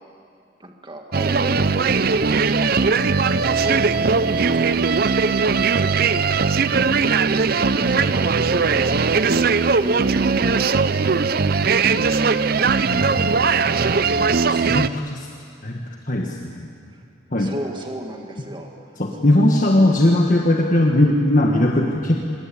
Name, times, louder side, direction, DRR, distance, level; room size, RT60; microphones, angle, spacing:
voice 1, 0.6-1.7 2.5-3.1 3.3-6.1 7.3-11.1 12.7-13.5 16.9-17.1 17.3-18.7, right 1 dB, 25° right, 2 dB, 1.9 m, -35 dB
sound 1, 1.1-14.9, right 4 dB, 50° right, 0.6 m, -19 dB
voice 2, 14.2-15.3 15.6-15.8 16.1-16.7 17.3-17.5 19.0-22.3, left 1 dB, 40° left, 0 dB, 1.7 m, -19 dB
25.5 x 22.0 x 8.6 m, 2.3 s
head